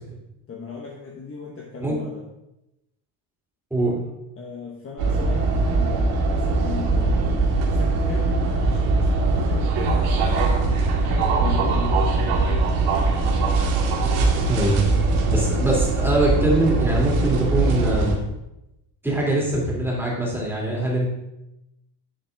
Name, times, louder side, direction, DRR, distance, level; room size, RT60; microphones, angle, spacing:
voice 1, 0.5-2.3 4.4-7.4 7.7-10.5 11.0-12.2 14.0-14.6, left 5 dB, 30° left, -1 dB, 1.1 m, -36 dB
sound 1, 5.0-18.2, right 3 dB, 90° right, 1.9 m, -21 dB
voice 2, 14.5-14.8 15.3-18.2 19.0-21.1, right 1 dB, 5° right, -4 dB, 2.7 m, -22 dB
10.5 x 7.3 x 3.4 m, 0.91 s
cardioid pair, 150°, 48 cm